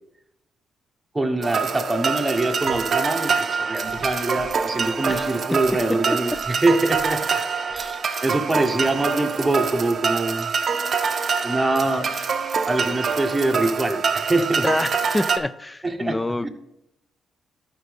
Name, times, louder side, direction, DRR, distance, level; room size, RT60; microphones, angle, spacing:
voice 1, 1.1-7.2 7.7-10.5 11.4-12.1 12.7-14.6 15.8-16.2 16.4-16.5, right 2 dB, 10° right, 1.1 m, -24 dB
sound 1, 1.4-15.4, right 5 dB, 45° right, 0.6 m, -25 dB
Gurgling / Sink (filling or washing) / Liquid, 2.6-2.9 3.8-6.5 6.9-7.2 7.7-7.9 8.9-9.1, equal, 80° left, 2.4 m, -45 dB
voice 2, 5.1-5.4 14.6-16.5, left 2 dB, 15° left, 0.3 m, -27 dB
12.5 x 5.4 x 3.4 m
cardioid pair, 90°, 0 cm